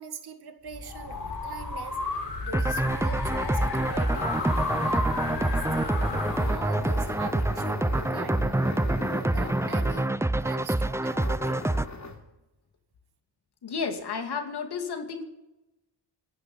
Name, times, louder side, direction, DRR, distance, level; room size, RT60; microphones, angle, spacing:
voice 1, 0.0-2.0 2.4-6.0 6.4-8.6 9.0-10.1 10.4-11.6, right 6 dB, 65° right, 8 dB, 1.9 m, -42 dB
sound 1, 0.7-7.8, left 3 dB, 85° left, 5.7 m, -33 dB
sound 2, 2.5-11.9, right 2 dB, 5° right, 0.6 m, -27 dB
sound 3, 3.7-10.3 11.1-12.3, left 3 dB, 40° left, 3.6 m, -39 dB
voice 2, 13.6-15.2, left 5 dB, 65° left, 5 dB, 2.6 m, -32 dB
25.5 x 11.0 x 4.0 m, 1.0 s
cardioid pair, 60°, 42 cm